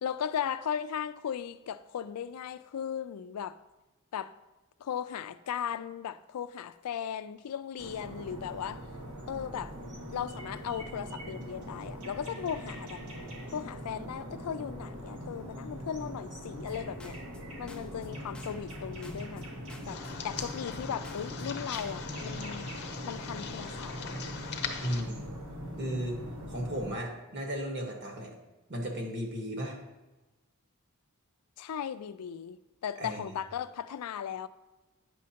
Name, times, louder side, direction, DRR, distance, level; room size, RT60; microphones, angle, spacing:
voice 1, 0.0-3.6 4.1-4.3 4.8-8.8 9.3-9.7 10.1-13.0 13.5-17.2 17.6-19.5 19.9-22.7 23.0-24.2 31.6-34.5, left 8 dB, 90° left, 0.4 m, -37 dB
sound 1, 7.8-26.9, equal, 85° right, 1.4 m, -42 dB
sound 2, 16.7-17.4 17.7-18.8 19.0-20.1 20.4-21.5 21.7-22.1, left 1 dB, 5° left, 0.5 m, -52 dB
sound 3, 19.9-25.0, left 6 dB, 50° left, 0.8 m, -40 dB
voice 2, 24.8-25.3 25.8-26.2 26.5-28.3 28.7-29.8 33.0-33.3, equal, 50° right, 1.3 m, -35 dB
9.1 x 6.2 x 2.8 m
head